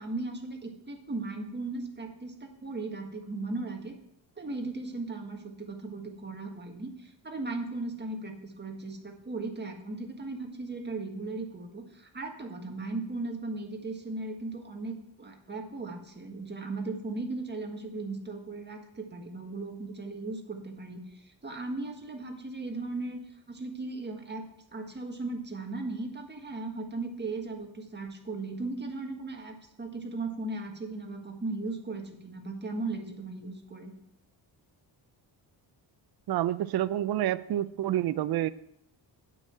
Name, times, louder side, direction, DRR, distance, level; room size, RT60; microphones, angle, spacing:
voice 1, 0.0-3.9 4.4-23.2 23.5-33.9, right 3 dB, 25° right, 2 dB, 1.7 m, -37 dB
voice 2, 36.3-38.5, right 12 dB, 55° right, 14 dB, 0.5 m, -28 dB
8.9 x 5.8 x 7.9 m, 0.75 s
cardioid pair, 125°, 45 cm